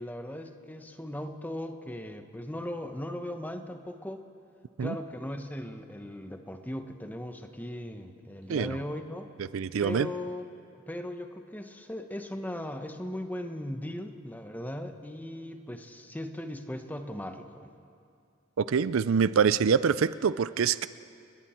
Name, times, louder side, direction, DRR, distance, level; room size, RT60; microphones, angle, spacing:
voice 1, 0.0-4.2 4.8-9.3 9.8-17.7, left 1 dB, 10° left, 7 dB, 1.0 m, -38 dB
voice 2, 9.5-10.1 18.6-20.9, right 6 dB, 70° right, 16 dB, 0.4 m, -25 dB
29.5 x 20.0 x 4.4 m, 2.5 s
head